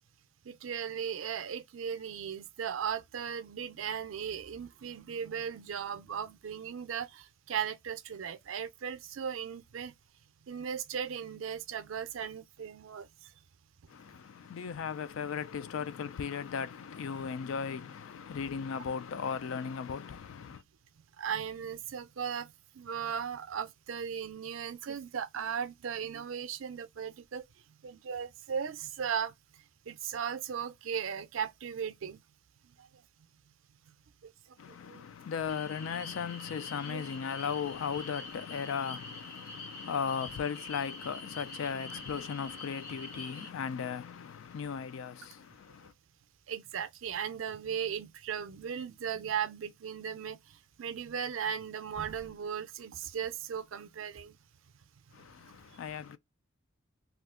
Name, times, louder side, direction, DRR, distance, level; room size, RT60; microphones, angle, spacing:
voice 1, 0.5-9.9 10.5-13.1 21.2-27.4 27.8-29.3 29.9-32.2 32.8-32.9 34.2-34.3 34.9-35.0 36.7-37.0 46.5-50.4 50.8-54.4, right 7 dB, 75° right, 0.5 m, -37 dB
voice 2, 13.9-20.6 34.6-45.9 55.1-56.2, left 6 dB, 80° left, 0.4 m, -37 dB
sound 1, 35.5-43.5, left 2 dB, 50° left, 0.9 m, -46 dB
2.6 x 2.4 x 3.6 m
head